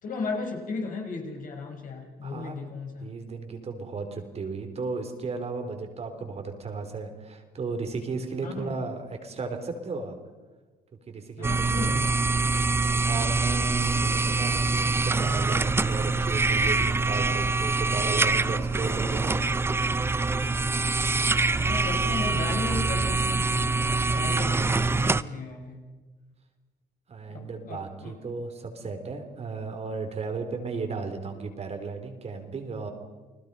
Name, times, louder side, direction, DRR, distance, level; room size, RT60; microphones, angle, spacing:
voice 1, 0.0-3.1 8.4-8.8 11.4-12.5 21.6-25.8 27.3-28.1, left 4 dB, 55° left, 2 dB, 5.4 m, -36 dB
voice 2, 2.2-2.7 3.0-10.2 11.1-11.9 13.0-19.4 27.1-32.9, right 4 dB, 40° right, 5 dB, 3.6 m, -35 dB
sound 1, 11.4-25.2, right 3 dB, 15° right, 0.6 m, -25 dB
30.0 x 20.0 x 5.5 m, 1.3 s
cardioid pair, 110°, 17 cm